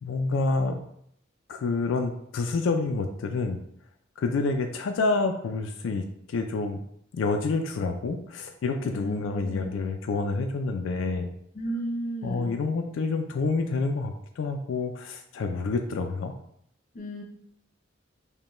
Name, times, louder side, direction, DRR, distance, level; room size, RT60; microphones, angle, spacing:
voice 1, 0.0-0.8 1.5-3.6 4.2-6.0 6.3-6.8 7.1-11.3 12.2-16.4, left 3 dB, 85° left, 5 dB, 0.3 m, -28 dB
voice 2, 8.9-9.8 11.5-12.6 16.9-17.2, equal, 45° left, 2 dB, 0.6 m, -34 dB
5.3 x 2.2 x 3.0 m, 0.71 s
head